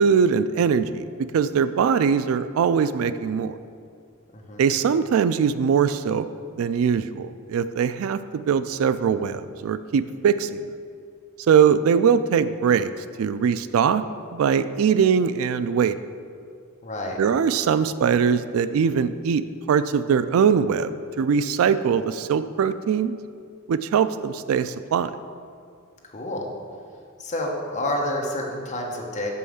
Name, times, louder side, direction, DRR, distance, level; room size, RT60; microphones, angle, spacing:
voice 1, 0.0-3.6 4.6-6.3 6.6-10.7 11.5-12.9 13.2-14.0 14.3-16.0 17.2-19.4 19.7-23.2 23.7-25.2, right 7 dB, 70° right, 13 dB, 0.3 m, -21 dB
voice 2, 4.3-4.7 16.8-17.2 26.0-26.5 27.2-29.3, left 1 dB, 35° left, -1 dB, 1.1 m, -29 dB
6.4 x 5.5 x 6.4 m, 2.3 s
head